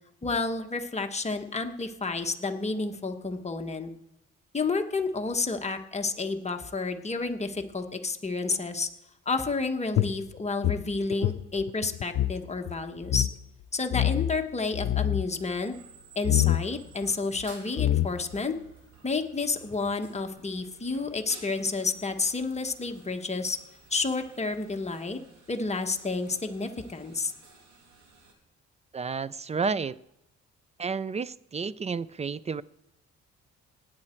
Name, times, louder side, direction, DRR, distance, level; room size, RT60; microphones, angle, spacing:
voice 1, 0.2-3.9 4.5-8.9 9.2-13.3 13.7-15.7 16.1-18.6 19.0-23.6 23.9-25.2 25.5-27.3, left 3 dB, 20° left, 4 dB, 1.3 m, -30 dB
sound 1, 10.0-12.4 12.7-12.8 13.0-13.3 13.9-14.4 14.7-15.3 16.2-16.6 17.4-17.5 17.8-18.4, left 14 dB, 60° left, 0.7 m, -26 dB
sound 2, 15.3-28.3, right 4 dB, 75° right, 2.9 m, -54 dB
voice 2, 28.9-30.0 30.8-32.6, right 5 dB, 25° right, 20 dB, 0.4 m, -31 dB
18.5 x 8.8 x 4.5 m, 0.85 s
cardioid pair, 90°, 30 cm